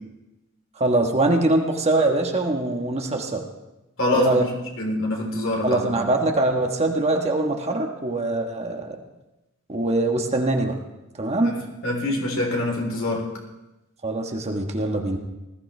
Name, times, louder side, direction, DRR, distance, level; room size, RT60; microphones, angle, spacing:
voice 1, 0.8-3.4 4.1-4.5 5.6-9.0 9.7-10.7 11.2-11.5 14.0-15.2, right 2 dB, 30° right, 3 dB, 1.3 m, -23 dB
voice 2, 4.0-4.4 4.8-5.9 11.4-11.6 11.8-13.2, left 2 dB, 65° left, -1 dB, 3.5 m, -25 dB
20.0 x 14.5 x 3.3 m, 0.98 s
head